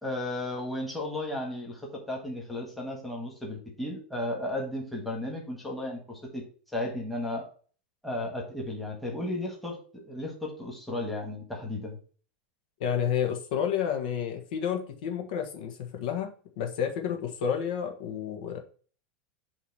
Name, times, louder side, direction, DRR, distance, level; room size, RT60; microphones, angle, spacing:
voice 1, 0.0-6.4 6.7-7.4 8.0-12.0, left 1 dB, ahead, 1 dB, 1.5 m, -34 dB
voice 2, 12.8-16.3 16.6-18.6, left 8 dB, 65° left, 4 dB, 1.3 m, -30 dB
8.1 x 2.9 x 4.8 m, 0.42 s
supercardioid pair, 155°, 5 cm